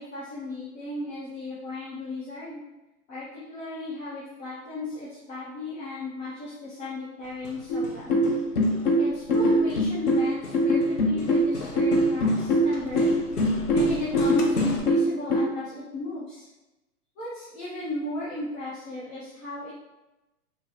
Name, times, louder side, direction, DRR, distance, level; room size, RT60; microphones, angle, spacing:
voice 1, 0.0-2.6 3.1-8.2 8.9-13.1 13.7-16.5 17.2-19.7, left 2 dB, 55° left, -10 dB, 1.4 m, -35 dB
Hammer, 7.2-14.8, left 2 dB, 75° left, 0.9 m, -38 dB
sound 1, 7.7-15.4, equal, 35° left, 0.5 m, -22 dB
4.4 x 2.5 x 2.8 m, 1.0 s
hypercardioid pair, 135°, 45 cm